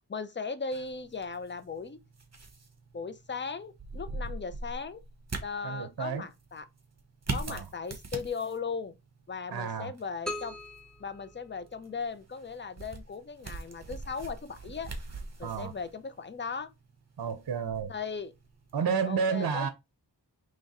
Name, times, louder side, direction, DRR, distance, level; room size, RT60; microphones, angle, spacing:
voice 1, 0.1-2.0 2.9-5.0 5.4-6.7 7.3-8.9 9.3-10.6 11.0-14.9 15.4-16.7 17.9-18.3 19.0-19.7, left 5 dB, 25° left, 0.6 m, -37 dB
sound 1, 0.7-18.8, right 3 dB, 40° right, 1.2 m, -43 dB
voice 2, 5.6-6.2 7.5-7.6 9.5-9.9 15.4-15.7 17.2-17.9 18.7-19.7, right 6 dB, 60° right, 0.7 m, -31 dB
sound 2, 10.3-12.2, left 1 dB, ahead, 0.8 m, -41 dB
3.6 x 3.3 x 4.1 m
wide cardioid pair, 40°, 41 cm